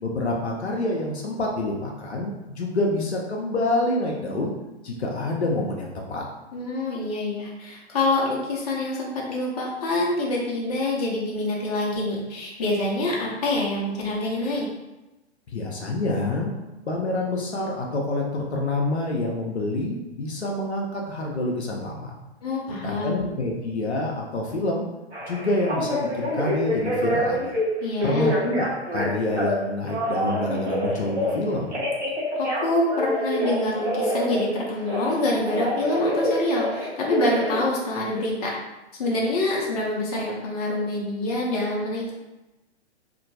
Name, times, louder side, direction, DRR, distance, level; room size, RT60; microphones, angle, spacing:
voice 1, 0.0-4.5 4.8-6.3 15.5-16.6 16.9-22.2 22.8-24.8 25.3-27.5 28.0-31.8, left 2 dB, 75° left, -1 dB, 0.6 m, -27 dB
voice 2, 6.5-14.7 22.4-23.2 27.8-28.4 32.4-38.5 39.0-42.1, left 2 dB, 35° left, -3 dB, 0.7 m, -26 dB
Telephone, 25.1-27.6 28.0-29.5 29.8-31.4 31.7-35.1 35.4-37.6, equal, 85° right, 1.0 m, -26 dB
2.9 x 2.6 x 2.7 m, 1.0 s
figure-of-eight pair, 115°, 34 cm